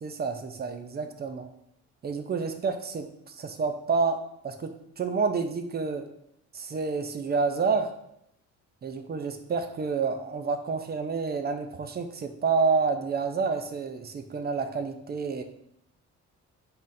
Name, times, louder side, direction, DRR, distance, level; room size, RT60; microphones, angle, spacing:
voice 1, 0.0-1.5 2.0-3.1 3.4-4.2 4.4-6.0 6.5-7.9 8.8-15.4, right 4 dB, 35° right, 7 dB, 0.5 m, -29 dB
4.2 x 3.6 x 2.6 m, 0.77 s
cardioid pair, 90°, 30 cm